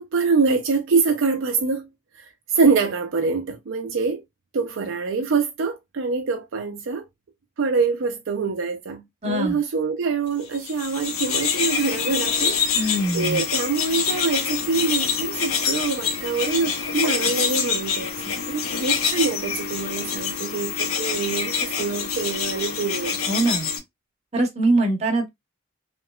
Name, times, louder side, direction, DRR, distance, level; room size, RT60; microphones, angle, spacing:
voice 1, 0.0-1.9 2.2-2.3 2.5-4.2 4.5-7.0 7.6-23.2, right 4 dB, 65° right, 0.4 m, -25 dB
voice 2, 9.2-9.6 12.7-13.4 23.3-23.7 24.3-25.3, right 2 dB, 30° right, 0.7 m, -22 dB
Baby Blue Tits, 10.5-23.8, left 6 dB, 85° left, 0.6 m, -26 dB
2.9 x 2.9 x 2.2 m
head